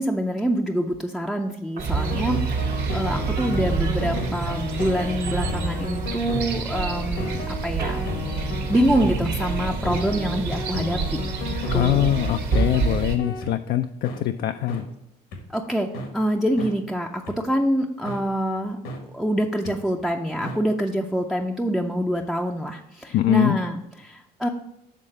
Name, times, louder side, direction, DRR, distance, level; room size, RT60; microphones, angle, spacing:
voice 1, 0.0-8.1 8.7-12.1 15.5-15.9 16.1-18.8 19.1-24.5, equal, ahead, 1 dB, 0.5 m, -26 dB
Slam / Squeak, 1.5-1.6 1.8-9.2, right 4 dB, 60° right, 1.3 m, -42 dB
sound 1, 1.8-13.2, right 4 dB, 85° right, 1.4 m, -27 dB
sound 2, 1.9-13.5 14.0-14.2 14.7-14.8 15.3-15.4 15.9-16.1 16.6-16.7 17.3-17.4 18.1-18.2 18.8-19.0 19.6-19.7 20.4-20.6, left 2 dB, 85° left, 1.6 m, -33 dB
voice 2, 11.7-14.8 23.1-23.6, left 13 dB, 65° left, 8 dB, 0.4 m, -23 dB
7.4 x 3.8 x 6.4 m, 0.83 s
cardioid pair, 110°, 17 cm